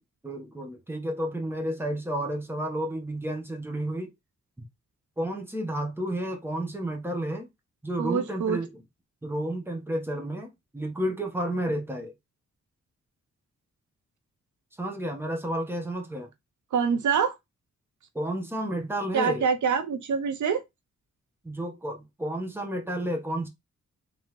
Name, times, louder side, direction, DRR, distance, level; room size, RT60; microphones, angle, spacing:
voice 1, 0.2-4.1 5.2-7.5 7.8-8.7 9.2-12.1 14.8-16.3 18.1-19.5 21.4-23.5, right 1 dB, 10° right, 1.3 m, -31 dB
voice 2, 8.0-8.6 16.7-17.4 19.1-20.6, right 6 dB, 75° right, 0.8 m, -25 dB
3.9 x 3.5 x 3.2 m
cardioid pair, 95°, 30 cm